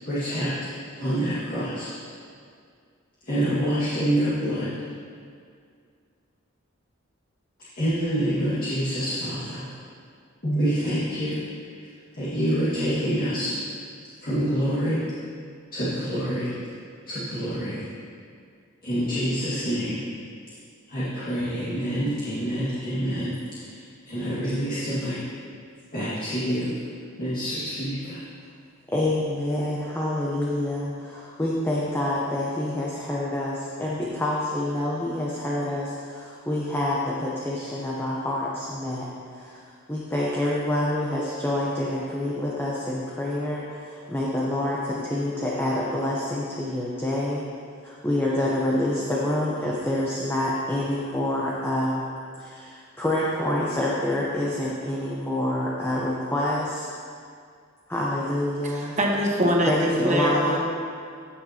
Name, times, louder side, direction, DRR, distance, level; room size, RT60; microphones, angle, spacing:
voice 1, 0.1-0.5 1.0-1.9 3.3-4.7 7.8-9.6 10.4-11.3 12.2-13.5 14.2-15.0 15.7-16.5 17.1-17.8 18.8-20.0 20.9-23.4 24.1-25.2 25.9-26.7 27.2-28.2, equal, 45° left, -12 dB, 1.9 m, -26 dB
voice 2, 28.9-39.6 39.9-47.4 47.8-52.0 52.4-56.9 57.9-59.0 59.7-60.6, left 1 dB, 10° left, -5 dB, 0.8 m, -27 dB
voice 3, 58.6-60.6, equal, 35° right, -1 dB, 1.2 m, -23 dB
15.0 x 6.6 x 2.9 m, 2.2 s
head